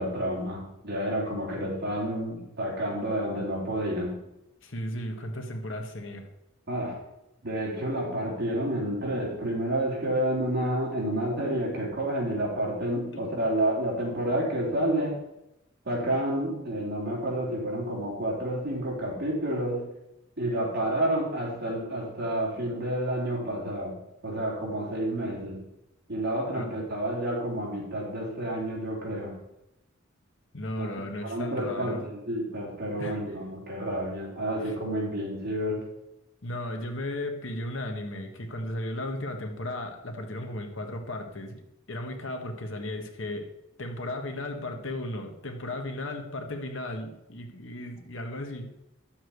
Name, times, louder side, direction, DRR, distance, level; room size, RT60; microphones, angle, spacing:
voice 1, 0.0-4.2 6.7-7.0 7.4-15.2 15.9-19.9 20.4-25.6 26.1-29.3 30.8-30.9 31.2-35.8, right 1 dB, 55° right, -3 dB, 3.5 m, -29 dB
voice 2, 4.6-6.3 13.1-13.3 26.5-26.7 30.5-32.0 33.0-33.2 34.6-34.7 36.4-41.6 41.9-43.5 43.8-48.7, left 1 dB, 65° left, 4 dB, 1.5 m, -35 dB
11.0 x 7.4 x 4.8 m, 0.88 s
head